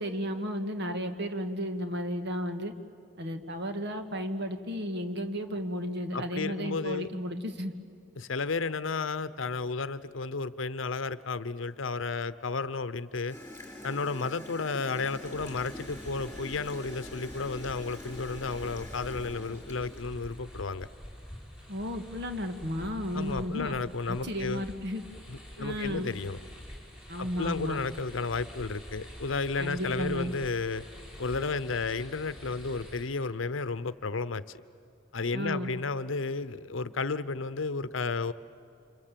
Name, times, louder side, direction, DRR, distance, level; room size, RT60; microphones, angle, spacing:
voice 1, 0.0-2.7 3.2-7.7 21.7-23.8 24.1-25.0 25.6-26.1 27.1-27.8 29.6-30.3 35.3-35.7, equal, 60° right, 7 dB, 1.8 m, -33 dB
voice 2, 6.1-7.1 8.2-13.4 13.8-20.9 23.1-24.7 25.3-26.4 27.2-30.8 31.2-34.6 35.1-38.3, left 4 dB, 75° left, 15 dB, 0.8 m, -32 dB
Gurgling / Toilet flush, 13.3-20.4, left 1 dB, 10° left, 4.3 m, -45 dB
sound 1, 15.0-33.0, equal, 5° right, 5.8 m, -47 dB
29.5 x 26.5 x 7.6 m, 2.5 s
head